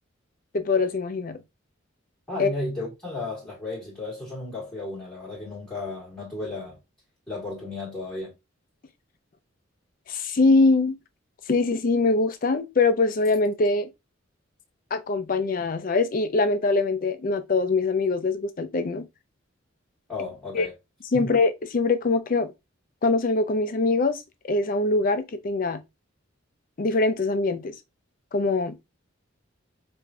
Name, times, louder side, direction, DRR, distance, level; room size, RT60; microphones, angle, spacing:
voice 1, 0.5-1.4 2.4-2.5 10.1-10.9 11.5-13.9 14.9-19.0 20.5-20.7 21.1-22.5 23.0-24.2 24.5-25.8 26.8-27.7 28.3-28.7, left 3 dB, 40° left, 0.4 m, -23 dB
voice 2, 2.3-6.8 7.3-8.3 20.1-20.7 21.1-21.3, left 2 dB, 5° left, 1.4 m, -34 dB
4.8 x 2.6 x 2.2 m
head